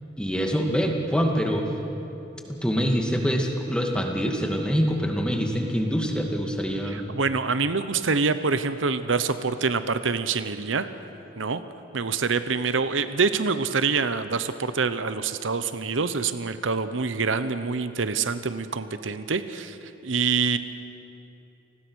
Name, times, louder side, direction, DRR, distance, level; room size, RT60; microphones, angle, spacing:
voice 1, 0.2-1.6 2.4-7.0, equal, 5° left, 1 dB, 2.1 m, -25 dB
voice 2, 6.9-10.9 11.4-11.6 11.9-19.8 20.0-20.6, right 4 dB, 80° right, 11 dB, 0.9 m, -26 dB
29.5 x 20.0 x 6.4 m, 2.8 s
head